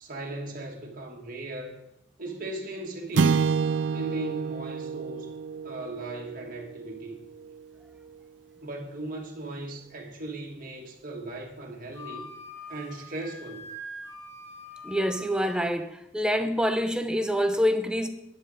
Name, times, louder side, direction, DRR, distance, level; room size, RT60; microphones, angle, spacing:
voice 1, 0.0-1.8 2.2-3.5 3.9-5.3 5.6-7.3 8.6-12.3 12.7-13.6, right 2 dB, 50° right, 2.0 m, -38 dB
sound 1, 3.1-7.6, right 5 dB, 75° right, 0.4 m, -28 dB
Wind instrument woodwind instrument, 11.9-15.7, left 1 dB, 15° left, 1.8 m, -43 dB
voice 2, 14.8-18.1, equal, 5° right, 0.8 m, -26 dB
10.5 x 9.8 x 4.1 m
head